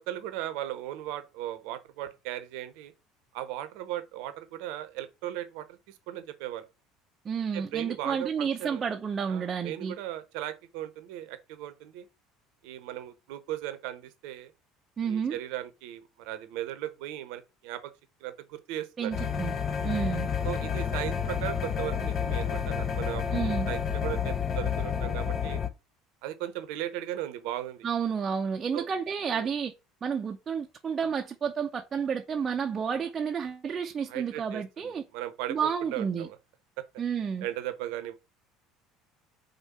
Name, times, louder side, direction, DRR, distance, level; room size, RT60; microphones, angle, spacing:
voice 1, 0.0-2.9 3.3-6.7 7.5-8.8 9.3-12.1 12.6-14.5 15.0-17.9 18.2-19.1 20.4-25.6 26.2-27.9 28.7-28.9 29.3-29.5 34.1-36.4 36.8-36.9 37.4-38.1, right 13 dB, 60° right, 0.9 m, -37 dB
voice 2, 7.2-9.9 15.0-15.4 19.0-19.6 19.8-20.3 23.3-23.7 27.8-29.7 30.0-35.0 35.5-36.3 37.0-37.5, right 6 dB, 30° right, 0.7 m, -31 dB
sound 1, 19.1-25.7, left 7 dB, 40° left, 0.8 m, -30 dB
5.4 x 3.7 x 5.9 m
figure-of-eight pair, 60°, 0 cm